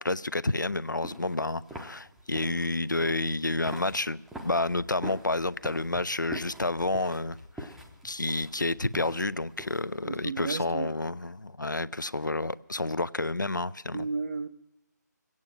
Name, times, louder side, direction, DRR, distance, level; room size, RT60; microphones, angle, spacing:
voice 1, 0.0-7.7 8.0-14.1, left 2 dB, 90° left, 0.5 m, -30 dB
sound 1, 0.7-10.0, right 1 dB, 5° right, 0.6 m, -45 dB
sound 2, 4.4-9.5, left 3 dB, 70° left, 1.1 m, -54 dB
voice 2, 10.0-10.9 13.9-14.5, right 4 dB, 50° right, 0.7 m, -33 dB
20.5 x 9.0 x 7.4 m
figure-of-eight pair, 150°, 10 cm